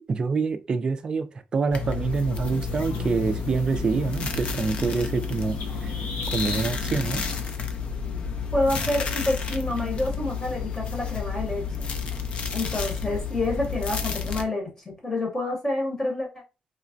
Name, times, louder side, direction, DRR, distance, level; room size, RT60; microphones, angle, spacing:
voice 1, 0.1-6.0 6.3-7.2, right 4 dB, 35° right, 0.3 m, -26 dB
sound 1, 1.7-14.4, left 5 dB, 50° left, 0.4 m, -31 dB
sound 2, 2.4-7.5, left 3 dB, 70° left, 0.9 m, -37 dB
voice 2, 8.5-11.9 12.5-16.3, left 2 dB, 20° left, 0.8 m, -28 dB
3.2 x 2.0 x 2.5 m
cardioid pair, 135°, 3 cm